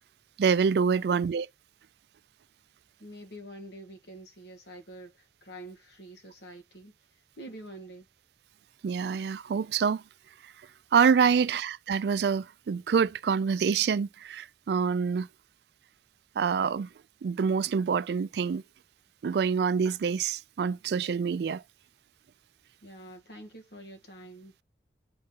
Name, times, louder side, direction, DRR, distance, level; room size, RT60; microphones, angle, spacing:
voice 1, 0.4-1.5 8.8-10.0 10.4-10.5 10.9-15.3 16.4-16.9 17.2-18.6 19.2-21.6, right 6 dB, 65° right, 0.3 m, -26 dB
voice 2, 0.9-1.2 3.0-6.9 7.4-8.1 11.2-11.4 22.8-24.5, right 1 dB, 70° left, 1.5 m, -46 dB
7.7 x 4.1 x 3.7 m
head